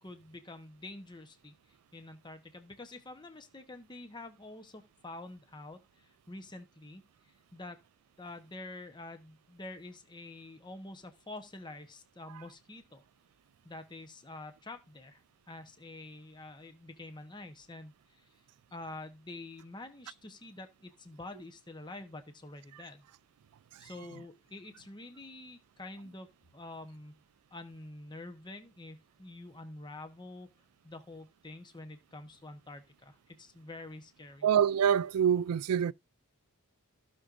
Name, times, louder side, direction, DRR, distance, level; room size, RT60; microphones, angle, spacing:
voice 1, 0.0-7.8 8.2-13.0 13.6-15.2 15.5-18.2 18.7-23.0 23.8-27.2 27.5-30.5 30.8-34.5, left 2 dB, 20° left, 1.0 m, -47 dB
voice 2, 34.4-35.9, right 8 dB, 85° right, 0.4 m, -26 dB
15.5 x 6.1 x 2.6 m
head